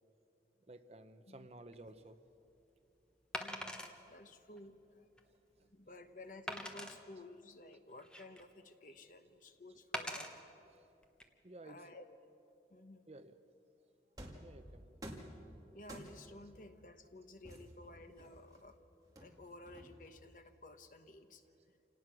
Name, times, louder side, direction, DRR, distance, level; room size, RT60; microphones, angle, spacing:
voice 1, 0.7-2.2 5.2-6.0 7.7-7.8 9.7-9.8 10.7-10.9 11.4-11.9 13.1-13.4 14.4-14.9 15.4-15.5, right 2 dB, 35° right, 9 dB, 0.8 m, -55 dB
Wood, 1.7-1.9 3.3-3.9 4.6-4.7 5.2-5.3 6.5-7.0 7.7-8.5 9.9-10.3 11.0-11.2, left 1 dB, 5° left, 1.1 m, -42 dB
voice 2, 3.4-5.1 5.6-10.4 11.6-12.0 12.7-13.1 15.5-18.8 19.2-21.4, left 2 dB, 45° left, 8 dB, 1.1 m, -54 dB
sound 1, 14.2-14.5 15.0-15.4 15.9-16.4 17.4-18.6 19.2-20.2, equal, 20° right, 2.2 m, -51 dB
28.0 x 18.0 x 6.1 m, 2.7 s
head